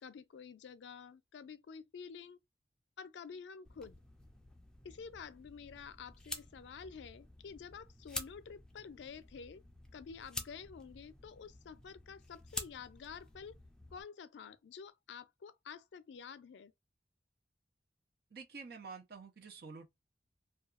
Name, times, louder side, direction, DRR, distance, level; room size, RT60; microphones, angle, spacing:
voice 1, 0.0-2.4 3.0-4.0 4.8-9.6 9.9-13.5 13.9-16.7, left 6 dB, 80° left, 0.4 m, -50 dB
sound 1, 3.6-14.0, left 2 dB, 5° left, 0.4 m, -49 dB
voice 2, 18.3-19.9, right 5 dB, 60° right, 0.6 m, -49 dB
2.7 x 2.3 x 2.3 m
head